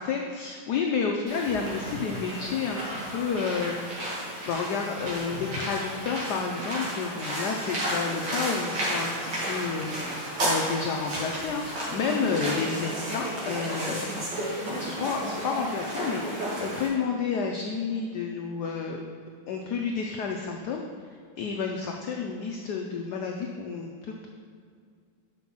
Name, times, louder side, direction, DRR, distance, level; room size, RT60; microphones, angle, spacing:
voice 1, 0.0-3.9 4.5-14.3 14.7-19.1 19.5-20.8 21.4-24.3, left 5 dB, 80° left, 2 dB, 0.9 m, -30 dB
sound 1, 1.3-16.9, right 1 dB, 60° right, 2.4 m, -32 dB
5.6 x 5.3 x 5.9 m, 2.2 s
omnidirectional pair, 2.3 m